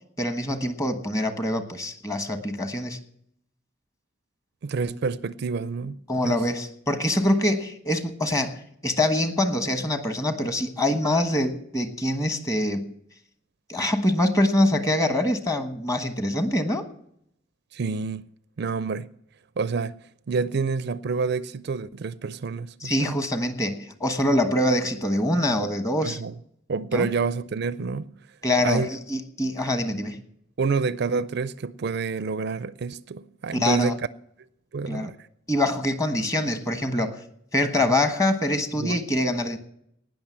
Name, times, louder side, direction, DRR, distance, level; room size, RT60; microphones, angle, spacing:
voice 1, 0.2-3.0 6.1-12.9 13.7-16.9 22.8-26.2 26.9-27.1 28.4-30.2 33.5-33.9 34.9-35.1 35.5-37.2 37.5-39.6, left 1 dB, 15° left, 1.3 m, -24 dB
voice 2, 4.6-6.0 6.2-6.4 17.7-18.3 18.6-19.1 19.6-20.0 20.3-23.2 26.0-26.3 26.7-28.1 28.6-28.9 30.6-34.0 34.7-35.2 38.8-39.0, right 4 dB, 55° right, 0.4 m, -28 dB
18.5 x 6.3 x 7.4 m
head